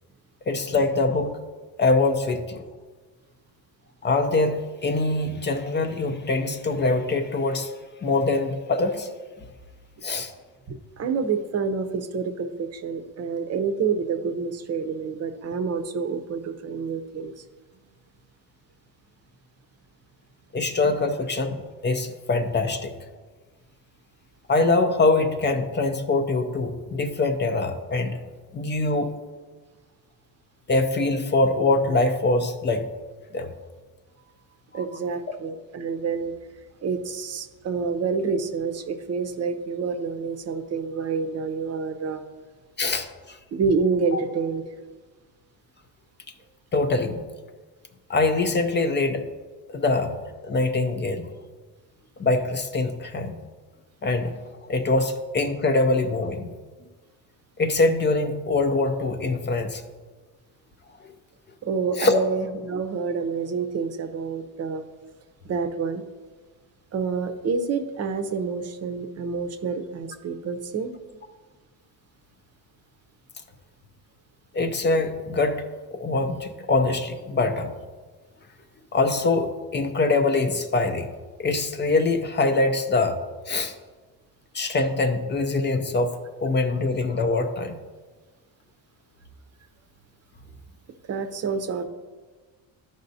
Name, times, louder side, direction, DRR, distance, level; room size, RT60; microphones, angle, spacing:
voice 1, 0.5-1.4 1.8-2.6 4.0-7.7 8.0-9.1 10.0-10.3 20.5-21.6 21.8-22.9 24.5-28.2 28.5-29.1 30.7-32.9 33.3-33.5 34.7-34.8 42.8-43.4 44.1-44.2 46.7-47.3 48.1-49.3 49.7-50.2 50.4-51.3 52.2-53.4 54.0-54.4 54.7-56.5 57.6-59.8 62.0-62.2 74.5-75.6 75.9-77.7 78.9-81.1 81.4-83.2 83.5-83.7 84.5-86.1 86.4-87.8, left 3 dB, 25° left, 0.6 m, -23 dB
voice 2, 10.7-17.4 34.7-36.3 36.8-42.2 43.5-44.6 61.6-64.8 65.4-66.0 66.9-70.9 91.1-91.8, right 5 dB, 40° right, 0.7 m, -28 dB
13.0 x 5.1 x 2.7 m
cardioid pair, 110°, 40 cm